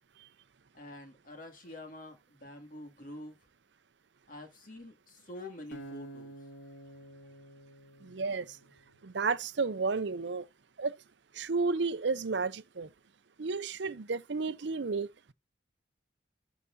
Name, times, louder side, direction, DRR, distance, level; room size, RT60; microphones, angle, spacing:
voice 1, 0.7-3.4 4.3-6.3, left 1 dB, 45° left, 2.4 m, -47 dB
Acoustic guitar, 5.7-8.9, right 2 dB, 75° left, 1.6 m, -49 dB
voice 2, 8.0-8.6 9.0-10.5 10.8-10.9 11.3-12.9 13.4-15.1, right 4 dB, 65° right, 0.6 m, -32 dB
12.5 x 4.9 x 2.7 m
head